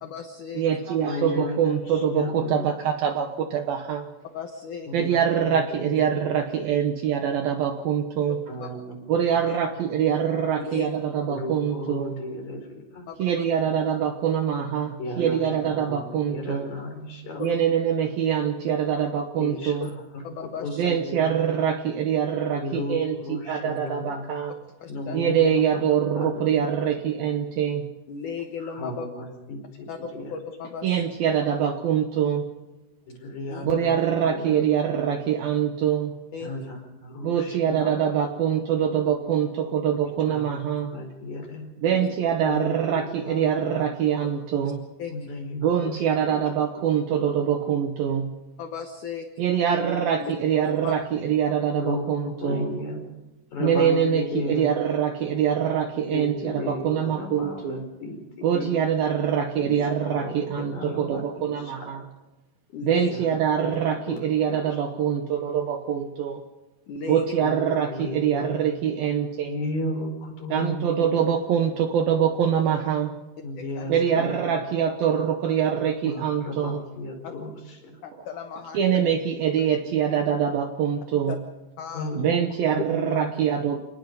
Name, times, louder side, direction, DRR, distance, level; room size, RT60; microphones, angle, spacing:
voice 1, 0.0-0.6 4.3-5.1 8.6-8.7 10.6-10.9 13.1-13.4 15.2-15.3 17.4-17.5 19.5-19.9 20.2-20.9 24.8-25.2 28.1-29.1 29.9-30.0 30.3-30.9 33.5-33.6 36.3-36.5 37.7-37.8 41.9-42.0 45.0-45.3 48.6-49.5 50.2-50.3 50.6-50.9 58.5-58.7 62.7-63.1 66.9-67.2 73.8-73.9 78.0-78.8 80.1-80.2 81.3-81.4 81.8-82.1, left 6 dB, 65° left, 5 dB, 2.1 m, -36 dB
voice 2, 0.5-4.1 4.9-8.4 9.1-12.1 13.2-16.7 17.4-19.9 20.8-24.5 25.1-27.9 30.8-32.4 33.6-36.1 37.2-41.0 41.8-44.9 45.6-48.3 49.4-52.7 53.6-57.8 58.4-62.0 62.8-66.4 67.1-69.6 70.5-73.1 73.9-76.8 78.7-81.4 82.2-83.8, right 8 dB, 70° right, 5 dB, 2.4 m, -24 dB
voice 3, 1.1-2.7 4.9-6.3 8.5-10.2 11.3-13.1 15.0-17.4 19.3-20.2 20.6-21.4 22.5-24.3 24.9-25.8 26.1-26.7 28.6-30.3 33.1-34.8 36.4-37.9 40.3-40.5 40.9-41.7 42.4-43.9 45.1-46.5 46.7-46.8 47.1-47.2 51.8-53.0 53.5-54.7 56.1-58.7 59.6-61.9 63.0-63.3 63.6-63.7 64.1-64.8 67.4-67.6 67.9-68.6 69.4-71.3 73.4-74.6 76.0-78.0 81.9-82.4 82.7-83.3, left 2 dB, 40° left, 1 dB, 5.8 m, -35 dB
28.5 x 19.5 x 5.3 m, 1.0 s
omnidirectional pair, 5.2 m